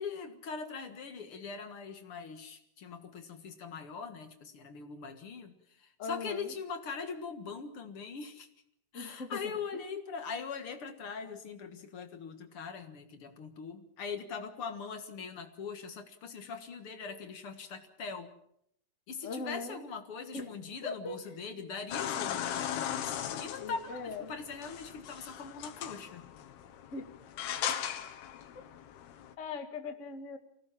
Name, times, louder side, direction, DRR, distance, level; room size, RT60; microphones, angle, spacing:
voice 1, 0.0-8.5 8.9-18.3 19.1-26.3 27.7-27.8, left 5 dB, 50° left, 7 dB, 1.7 m, -41 dB
voice 2, 6.0-6.5 8.9-9.5 19.2-19.8 20.3-20.5 20.8-21.3 23.6-24.4 26.9-27.1 27.6-27.7 29.4-30.4, left 4 dB, 35° left, 5 dB, 1.1 m, -40 dB
sound 1, 21.9-29.3, left 10 dB, 85° left, 3.3 m, -38 dB
24.5 x 17.5 x 7.3 m, 0.72 s
omnidirectional pair, 4.5 m